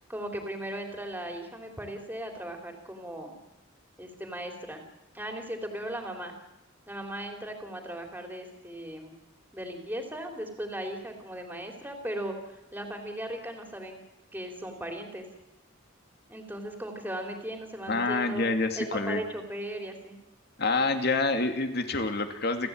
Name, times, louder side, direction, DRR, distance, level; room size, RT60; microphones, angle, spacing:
voice 1, 0.1-3.3 4.0-4.8 5.1-6.3 6.9-9.2 9.5-14.0 14.3-15.3 16.3-18.5 18.7-20.1, right 1 dB, 10° right, 3 dB, 3.4 m, -37 dB
voice 2, 17.9-19.2 20.6-22.7, left 3 dB, 50° left, 7 dB, 2.5 m, -27 dB
29.0 x 13.5 x 8.8 m, 1.0 s
head